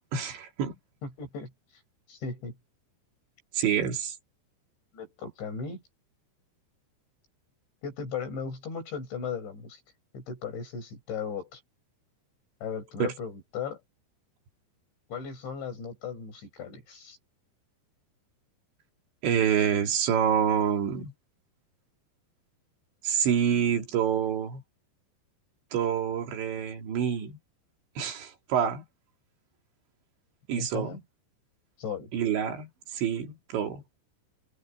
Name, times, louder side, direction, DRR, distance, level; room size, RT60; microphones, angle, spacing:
voice 1, 0.1-0.7 3.5-4.2 13.0-13.1 19.2-21.1 23.0-24.6 25.7-27.4 28.0-28.8 30.5-31.0 32.1-33.8, right 8 dB, 80° right, 5.2 m, -27 dB
voice 2, 1.0-1.5 2.1-2.5 4.9-5.8 7.8-9.8 10.1-11.6 12.6-13.8 15.1-17.2 30.6-31.0 31.8-32.1, left 6 dB, 80° left, 9.7 m, -36 dB
omnidirectional pair, 5.1 m